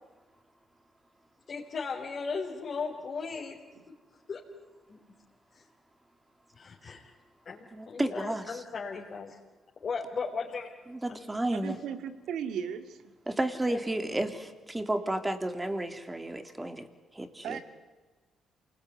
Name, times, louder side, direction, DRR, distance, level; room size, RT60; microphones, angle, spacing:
voice 1, 1.5-3.6 4.3-4.4 6.6-7.0 7.5-7.6 7.9-9.3 9.8-10.7 11.1-11.3 13.7-13.8, left 5 dB, 45° left, -2 dB, 4.3 m, -36 dB
voice 2, 7.7-8.6 10.9-11.8 13.3-16.9 17.1-17.6, right 1 dB, 15° right, 9 dB, 2.9 m, -32 dB
voice 3, 11.5-13.1 17.4-17.6, right 8 dB, 80° right, 10 dB, 2.2 m, -36 dB
28.0 x 20.5 x 9.8 m, 1.3 s
cardioid pair, 90°, 0 cm